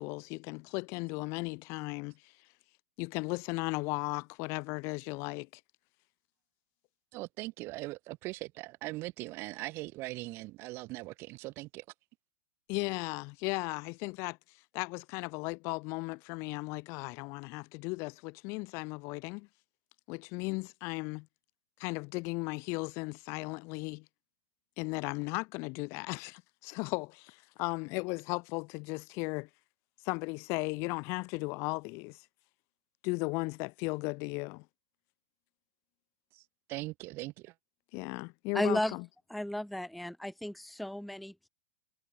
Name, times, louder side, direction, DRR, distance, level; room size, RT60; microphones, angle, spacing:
voice 1, 0.0-2.3 3.0-5.5 12.7-14.4 14.7-19.5 20.1-21.3 21.8-24.0 24.8-29.5 30.0-32.2 33.0-34.6 37.9-39.0, left 29 dB, 35° left, 1.1 m, -36 dB
voice 2, 7.1-11.8 36.3-37.5, right 20 dB, 30° right, 0.8 m, -40 dB
voice 3, 38.5-39.0 39.3-41.5, left 1 dB, ahead, 0.5 m, -34 dB
supercardioid pair, 160°, 8 cm